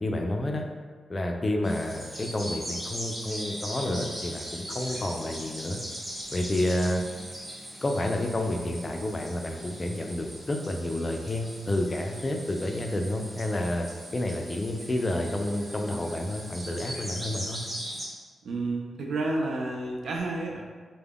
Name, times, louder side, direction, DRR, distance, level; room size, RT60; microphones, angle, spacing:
voice 1, 0.0-0.6 1.1-5.8 6.3-7.0 7.8-13.9 14.1-17.6, left 1 dB, 30° left, 2 dB, 0.3 m, -30 dB
sound 1, 1.6-18.1, equal, 30° right, 0.9 m, -40 dB
voice 2, 18.4-20.7, right 2 dB, 75° right, 0 dB, 0.3 m, -30 dB
2.3 x 2.1 x 3.3 m, 1.5 s
cardioid pair, 100°, 0 cm